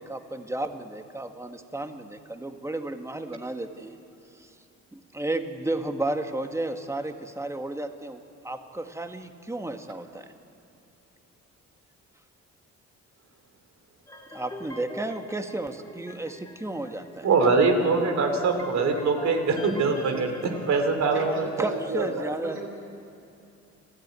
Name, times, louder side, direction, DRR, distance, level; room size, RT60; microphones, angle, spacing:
voice 1, 0.0-4.0 4.3-4.5 4.9-10.3 14.3-17.3 21.6-22.6, right 2 dB, 10° right, 6 dB, 1.6 m, -33 dB
sound 1, 14.1-20.8, left 1 dB, 10° left, 2.4 m, -42 dB
voice 2, 17.2-22.3, right 4 dB, 65° right, 5 dB, 3.1 m, -23 dB
voice 3, 21.0-21.7 22.1-22.6, right 3 dB, 40° right, 0 dB, 6.7 m, -38 dB
29.5 x 13.5 x 9.5 m, 2.7 s
cardioid pair, 90°, 30 cm